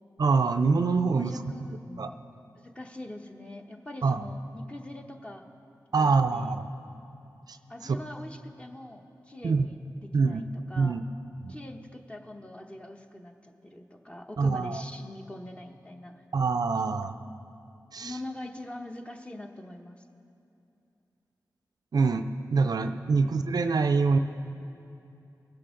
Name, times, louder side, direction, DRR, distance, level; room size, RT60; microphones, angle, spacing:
voice 1, 0.2-1.7 2.0-2.1 4.0-4.3 5.9-6.7 7.5-7.6 7.8-8.0 9.4-9.7 10.1-10.4 10.8-11.0 11.4-11.5 14.4-14.8 16.3-17.1 17.9-18.2 21.9-24.2, right 4 dB, 65° right, 9 dB, 0.4 m, -25 dB
voice 2, 1.1-1.8 2.6-5.5 5.9-6.5 7.7-9.8 10.1-11.0 11.5-16.2 18.0-20.0, left 1 dB, 15° left, 3 dB, 1.0 m, -43 dB
19.5 x 7.6 x 3.8 m, 2.7 s
cardioid pair, 50°, 7 cm